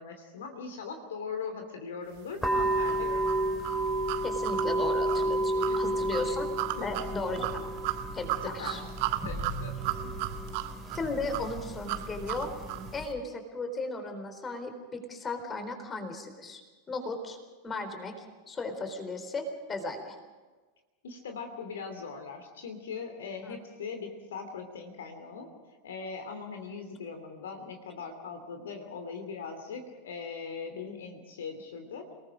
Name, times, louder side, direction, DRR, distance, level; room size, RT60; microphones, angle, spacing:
voice 1, 0.0-3.3 5.7-6.3 6.8-7.1 8.4-8.8 9.2-10.1 10.5-10.6 21.0-25.5 25.8-32.1, left 5 dB, 60° left, 5 dB, 2.8 m, -40 dB
sound 1, 2.4-13.0, right 1 dB, ahead, 3.6 m, -32 dB
sound 2, 2.9-12.9, right 15 dB, 45° right, 1.5 m, -35 dB
voice 2, 4.2-6.5 6.8-7.7 8.1-8.8 10.9-12.5 12.9-16.6 16.9-17.4 17.6-18.1 18.5-20.2 23.4-23.6, left 2 dB, 20° left, 7 dB, 4.1 m, -36 dB
29.5 x 19.5 x 5.2 m, 1.3 s
figure-of-eight pair, 90°, 0 cm